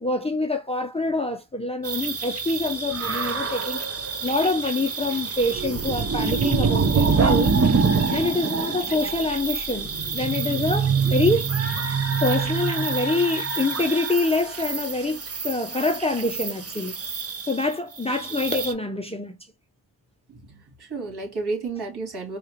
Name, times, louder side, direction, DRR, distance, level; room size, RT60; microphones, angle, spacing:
voice 1, 0.0-7.5 8.1-11.5 12.2-16.9 17.4-19.3, left 2 dB, 10° left, 0.8 m, -26 dB
sound 1, 1.8-18.7, right 5 dB, 30° right, 0.9 m, -26 dB
voice 2, 20.3-22.4, right 3 dB, 50° right, 3.2 m, -32 dB
4.7 x 2.5 x 3.0 m
cardioid pair, 60°, 48 cm